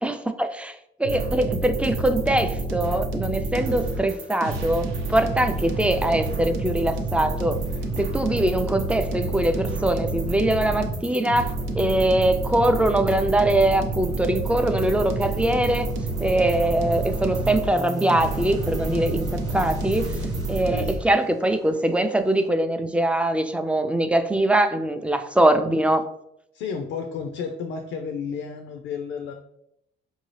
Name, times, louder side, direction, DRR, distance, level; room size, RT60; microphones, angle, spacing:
voice 1, 0.0-7.6 8.0-15.9 16.2-26.0, right 1 dB, 5° right, 8 dB, 0.3 m, -22 dB
sound 1, 1.0-21.0, right 2 dB, 85° right, 0.7 m, -29 dB
sound 2, 5.1-22.5, right 1 dB, 20° right, 0.9 m, -40 dB
voice 2, 26.5-29.3, left 6 dB, 90° left, 5 dB, 0.5 m, -32 dB
4.7 x 2.7 x 3.2 m, 0.77 s
cardioid pair, 90°, 20 cm